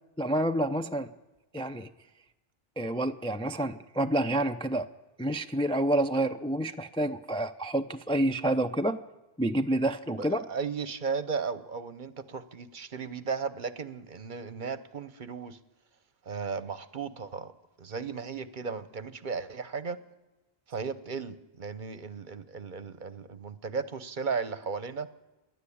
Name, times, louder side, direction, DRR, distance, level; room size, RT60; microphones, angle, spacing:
voice 1, 0.2-1.1 1.5-1.9 2.8-4.9 5.2-9.0 9.4-10.4, right 1 dB, 5° left, 8 dB, 0.4 m, -28 dB
voice 2, 10.2-15.6 16.3-17.5 17.8-20.0 20.7-25.1, right 5 dB, 50° right, 15 dB, 1.0 m, -35 dB
28.0 x 11.0 x 8.6 m, 1.1 s
omnidirectional pair, 1.1 m